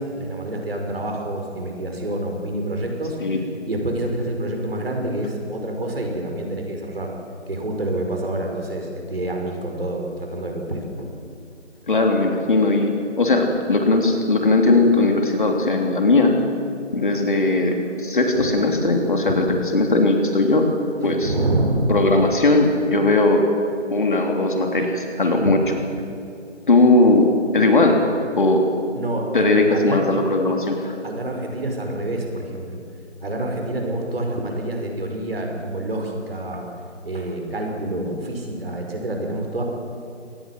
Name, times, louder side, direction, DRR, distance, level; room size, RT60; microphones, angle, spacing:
voice 1, 0.0-3.2 3.7-7.1 7.5-11.1 18.3-18.5 19.2-19.4 21.0-21.9 25.4-25.6 28.9-30.1 31.0-32.8 33.2-36.7 37.0-39.6, right 1 dB, 55° right, 2 dB, 5.6 m, -27 dB
voice 2, 11.9-16.3 16.9-20.7 21.0-21.3 21.9-23.5 23.9-25.6 26.7-28.0 28.4-28.6 29.3-30.9, left 2 dB, 45° left, 2 dB, 3.2 m, -18 dB
25.0 x 19.0 x 7.9 m, 2.5 s
figure-of-eight pair, 170°, 36 cm